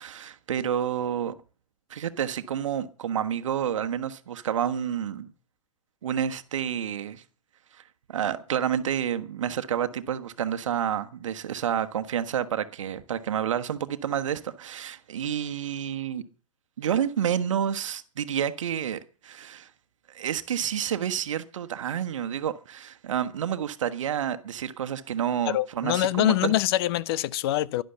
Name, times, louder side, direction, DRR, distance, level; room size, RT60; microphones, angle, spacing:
voice 1, 0.0-1.4 1.9-5.3 6.0-7.2 8.1-16.2 16.8-19.7 20.1-26.6, right 9 dB, 65° right, 1.3 m, -29 dB
voice 2, 25.5-27.8, left 14 dB, 45° left, 0.7 m, -24 dB
11.5 x 11.5 x 6.8 m
figure-of-eight pair, 110°, 18 cm